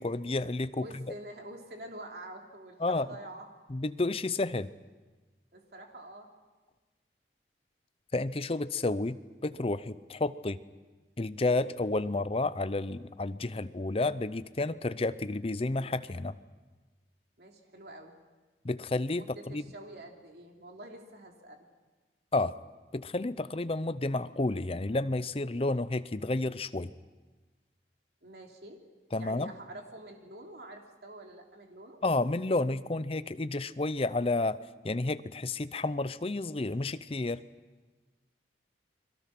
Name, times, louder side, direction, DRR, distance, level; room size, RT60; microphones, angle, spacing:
voice 1, 0.0-1.0 2.8-3.1 3.7-4.7 8.1-10.6 11.2-16.4 18.6-19.6 22.3-22.5 22.9-26.9 29.1-29.5 32.0-34.6 34.8-37.4, left 2 dB, 35° left, 14 dB, 0.6 m, -31 dB
voice 2, 0.8-3.5 5.5-6.3 17.4-18.2 19.2-21.7 28.2-28.8 29.2-32.0, right 1 dB, 60° right, 2 dB, 3.1 m, -47 dB
30.0 x 22.5 x 6.0 m, 1.3 s
head